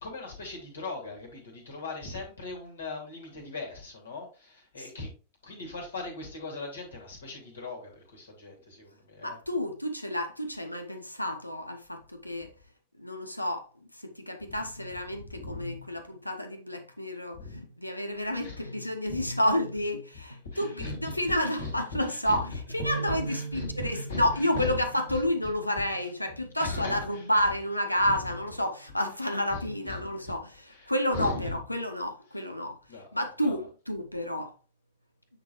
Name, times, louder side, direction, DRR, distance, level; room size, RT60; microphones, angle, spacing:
voice 1, 0.0-5.1 5.4-9.4 14.5-14.6 15.2-15.8 17.3-17.5 18.4-18.6 19.1-19.2 20.5-21.7 22.0-22.4 22.9-24.8 25.1-25.2 26.6-27.3 28.0-28.2 29.5-30.0 30.7-31.5 32.9-33.1 33.4-33.6, left 3 dB, 70° left, 2.7 m, -39 dB
voice 2, 9.2-12.5 13.0-13.7 14.2-30.5 30.9-32.8 33.1-34.5, left 1 dB, 85° left, 0.9 m, -30 dB
sound 1, 22.8-26.3, right 5 dB, 55° right, 1.1 m, -40 dB
8.9 x 3.9 x 3.0 m
figure-of-eight pair, 90°, 0 cm